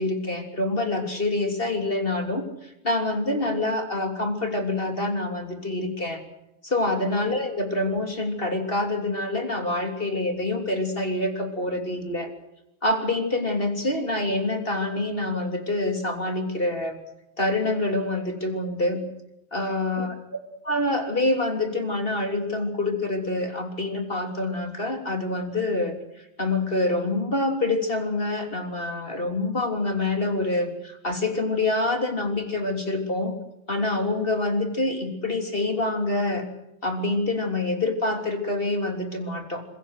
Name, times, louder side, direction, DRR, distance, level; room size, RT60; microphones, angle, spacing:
voice 1, 0.0-6.2 6.6-12.3 12.8-17.0 17.4-19.0 19.5-20.1 20.6-33.3 33.7-36.4 36.8-39.6, left 2 dB, 15° left, 5 dB, 2.9 m, -26 dB
26.0 x 23.0 x 6.5 m, 0.86 s
omnidirectional pair, 4.2 m